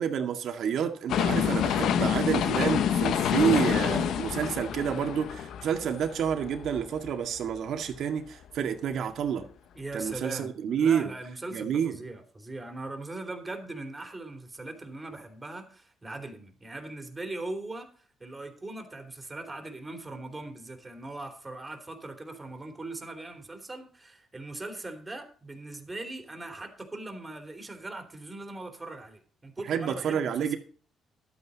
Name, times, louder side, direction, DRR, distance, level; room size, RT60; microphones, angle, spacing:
voice 1, 0.0-9.4 9.9-11.1 11.5-12.0 29.7-30.6, right 8 dB, 65° right, 1.9 m, -29 dB
sound 1, 1.1-7.1 7.5-7.6, left 9 dB, 70° left, 0.7 m, -27 dB
voice 2, 9.7-10.5 10.7-30.6, right 2 dB, 20° right, 3.1 m, -40 dB
12.0 x 8.8 x 4.1 m
cardioid pair, 90°, 0 cm